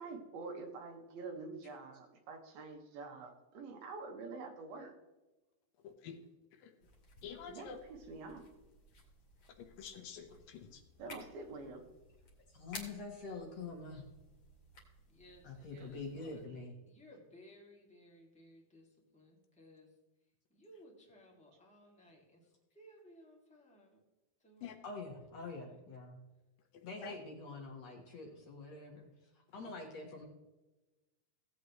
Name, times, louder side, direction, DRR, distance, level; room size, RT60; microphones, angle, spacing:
voice 1, 0.0-4.9 7.5-7.7 8.1-8.4 11.0-11.8 15.7-15.8, right 3 dB, 80° right, 3 dB, 3.3 m, -46 dB
voice 2, 5.8-6.2 6.5-6.7 7.2-7.8 9.6-10.8 24.6-24.8 26.7-27.2 29.7-29.8, left 7 dB, 75° left, 5 dB, 2.5 m, -49 dB
sound 1, 6.8-16.5, left 2 dB, 40° left, 3.0 m, -56 dB
voice 3, 11.0-11.7 15.1-16.4 16.9-19.9 20.5-24.0 24.4-25.3 25.6-25.7, equal, 5° left, -2 dB, 1.3 m, -60 dB
voice 4, 12.5-14.1 15.4-16.7 24.8-26.2 26.8-30.2, left 3 dB, 55° left, 1 dB, 2.0 m, -46 dB
17.0 x 8.4 x 3.1 m, 1.1 s
omnidirectional pair, 4.4 m